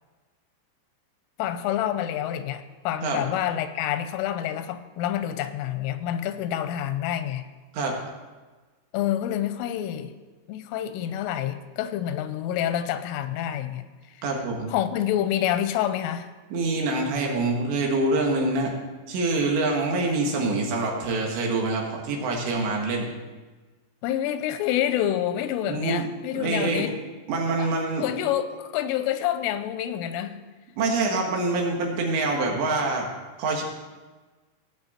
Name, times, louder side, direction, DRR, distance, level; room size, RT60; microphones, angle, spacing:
voice 1, 1.4-7.5 8.9-10.1 10.5-13.9 14.7-16.3 24.0-27.0 27.6-27.7 28.0-30.4, left 11 dB, 90° left, 10 dB, 3.3 m, -27 dB
voice 2, 14.2-14.7 16.5-18.7 19.1-23.1 25.7-26.1 26.4-26.9 27.3-28.1 30.8-33.1 33.4-33.6, right 2 dB, 70° right, 0 dB, 3.7 m, -25 dB
18.0 x 8.2 x 4.3 m, 1.3 s
omnidirectional pair, 5.6 m